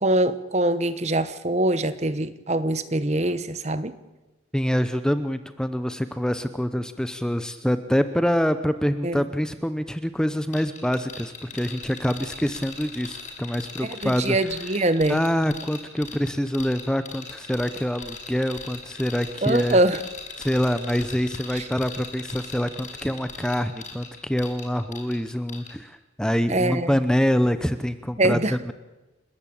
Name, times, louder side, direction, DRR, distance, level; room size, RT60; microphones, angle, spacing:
voice 1, 0.0-3.9 9.0-9.2 13.8-15.2 19.4-20.0 21.5-21.7 26.5-27.0 28.2-28.5, right 1 dB, 35° right, 13 dB, 1.1 m, -23 dB
voice 2, 4.5-14.4 15.1-19.8 20.4-28.7, equal, 5° left, 10 dB, 0.7 m, -25 dB
sound 1, 10.5-25.2 25.5-25.7, left 5 dB, 40° left, 5.9 m, -39 dB
29.5 x 13.0 x 8.7 m, 1.1 s
head